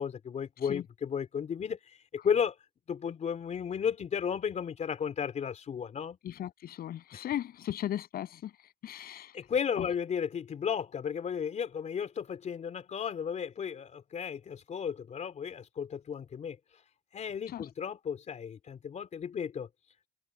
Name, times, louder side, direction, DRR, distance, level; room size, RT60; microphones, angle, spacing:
voice 1, 0.0-2.6 2.9-6.2 7.1-7.2 9.3-16.8 17.1-19.7, left 7 dB, 45° left, 3.4 m, -34 dB
voice 2, 6.2-8.5 8.8-9.3 17.5-17.7, left 11 dB, 60° left, 8.0 m, -37 dB
cardioid pair, 110°, 17 cm